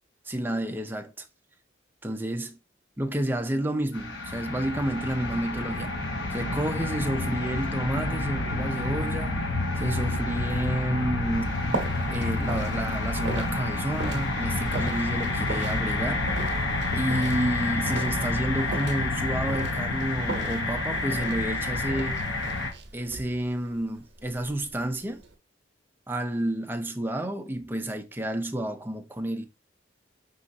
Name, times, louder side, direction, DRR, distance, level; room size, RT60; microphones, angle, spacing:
voice 1, 0.2-1.3 2.0-2.5 3.0-6.0 6.3-9.4 9.8-11.6 12.1-16.3 16.9-22.2 22.9-25.2 26.1-29.5, right 1 dB, 10° right, 0.5 m, -30 dB
sound 1, 3.9-22.7, left 2 dB, 70° left, 1.0 m, -29 dB
sound 2, 11.3-25.3, right 2 dB, 65° right, 0.8 m, -39 dB
5.5 x 3.1 x 2.7 m
head